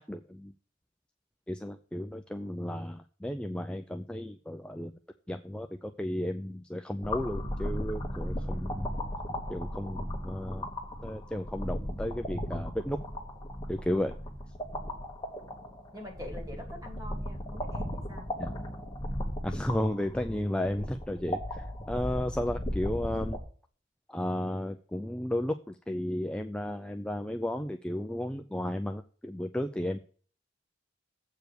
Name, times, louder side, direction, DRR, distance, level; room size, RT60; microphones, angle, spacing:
voice 1, 0.1-0.5 1.5-4.9 5.3-8.9 9.5-10.7 11.0-13.0 13.7-14.2 18.4-18.5 19.4-23.4 24.1-30.0, left 1 dB, 5° left, 6 dB, 0.3 m, -33 dB
sound 1, 7.0-23.4, equal, 20° left, 1.4 m, -36 dB
voice 2, 14.7-15.0 15.9-18.3 22.0-22.2, left 1 dB, 20° right, 0 dB, 2.8 m, -45 dB
7.9 x 4.8 x 6.7 m, 0.41 s
head